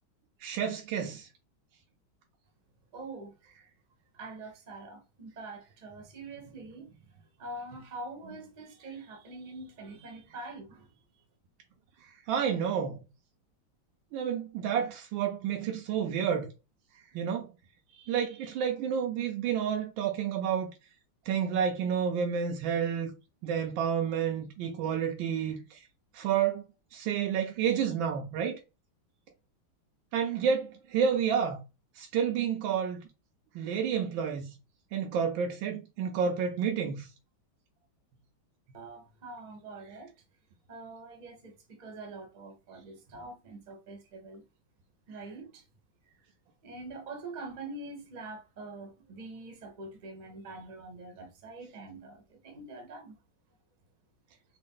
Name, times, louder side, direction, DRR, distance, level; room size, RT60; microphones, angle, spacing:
voice 1, 0.4-1.3 12.3-13.0 14.1-16.5 17.1-17.5 18.0-20.7 21.3-23.1 23.4-25.8 26.1-26.7 26.9-28.6 30.1-31.6 32.0-33.1 33.5-34.5 34.9-37.1, right 7 dB, 80° right, 1.3 m, -30 dB
voice 2, 2.9-3.3 4.1-11.2 38.7-40.1 40.7-44.4 45.1-45.6 46.6-53.2, right 2 dB, 40° right, 0.7 m, -44 dB
3.6 x 2.3 x 3.6 m
omnidirectional pair, 2.2 m